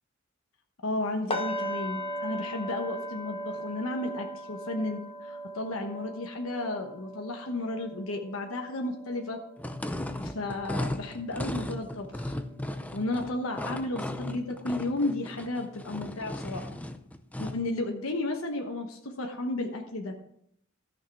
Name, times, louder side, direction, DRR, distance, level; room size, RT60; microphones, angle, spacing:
voice 1, 0.8-9.4 10.2-12.4 12.9-16.8 17.4-20.1, left 2 dB, 90° left, 3 dB, 1.1 m, -33 dB
sound 1, 1.3-11.2 11.6-11.8 12.3-12.4, equal, 25° left, 1.0 m, -39 dB
sound 2, 9.6-17.7, left 1 dB, 5° left, 0.6 m, -36 dB
14.0 x 6.4 x 4.7 m, 0.71 s
head